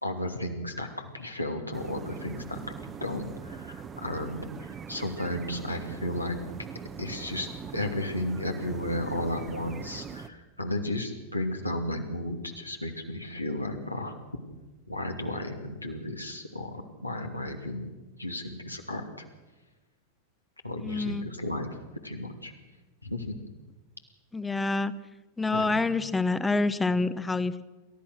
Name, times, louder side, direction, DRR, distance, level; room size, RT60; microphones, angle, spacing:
voice 1, 0.0-6.4 7.0-14.1 14.9-17.9 18.2-19.1 20.6-21.8 22.0-22.5 23.0-23.4 25.5-25.8, left 1 dB, 85° left, 3 dB, 2.6 m, -34 dB
sound 1, 1.7-10.3, right 6 dB, 25° right, 1.1 m, -41 dB
voice 2, 20.8-21.3 24.3-24.9 25.4-27.6, left 3 dB, 10° left, 14 dB, 1.0 m, -27 dB
28.5 x 14.0 x 6.5 m, 1.2 s
figure-of-eight pair, 90°, 0 cm